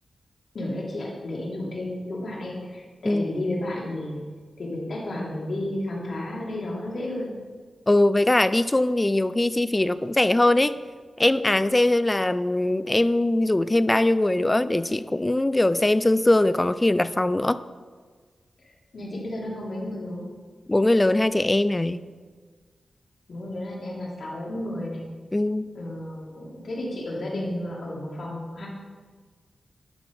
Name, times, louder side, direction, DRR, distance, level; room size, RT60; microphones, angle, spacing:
voice 1, 0.5-4.2 4.6-7.3 18.6-20.2 23.3-25.0 25.7-28.7, left 1 dB, 60° left, -4 dB, 2.8 m, -32 dB
voice 2, 7.9-10.8 11.2-17.6 20.7-22.0 25.3-25.7, left 1 dB, 15° left, 15 dB, 0.3 m, -21 dB
11.5 x 5.8 x 5.2 m, 1.5 s
wide cardioid pair, 125°, 0 cm